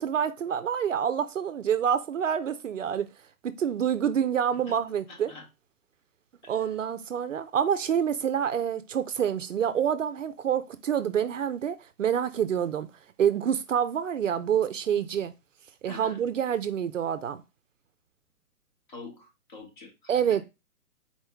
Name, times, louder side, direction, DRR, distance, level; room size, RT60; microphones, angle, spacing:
voice 1, 0.0-3.1 3.4-5.3 6.5-12.9 13.2-15.3 15.8-17.4 20.1-20.4, right 8 dB, 60° right, 0.5 m, -27 dB
voice 2, 5.1-5.5 6.4-6.7 15.9-16.2 18.9-20.4, left 3 dB, 30° left, 1.1 m, -46 dB
4.3 x 3.0 x 3.4 m
hypercardioid pair, 155°, 45 cm